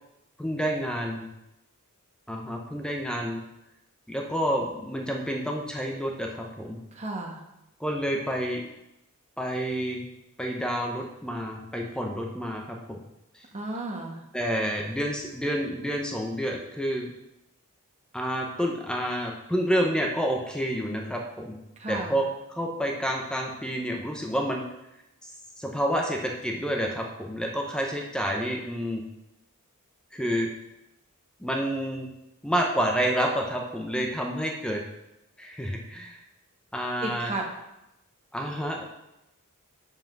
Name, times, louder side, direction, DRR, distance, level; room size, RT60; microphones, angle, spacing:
voice 1, 0.4-1.3 2.3-3.4 4.1-6.8 7.8-8.6 9.4-10.1 10.4-13.0 13.3-13.4 14.3-17.1 18.1-21.6 21.9-22.2 22.5-24.6 25.6-29.0 30.1-30.5 31.4-32.1 32.4-34.8 35.4-36.2 36.7-37.3 38.3-38.9, equal, 5° left, 1 dB, 0.7 m, -29 dB
voice 2, 6.9-7.4 13.5-14.2 21.8-22.2 37.0-37.4, right 2 dB, 30° right, 1 dB, 1.2 m, -33 dB
5.6 x 4.9 x 5.9 m, 0.89 s
head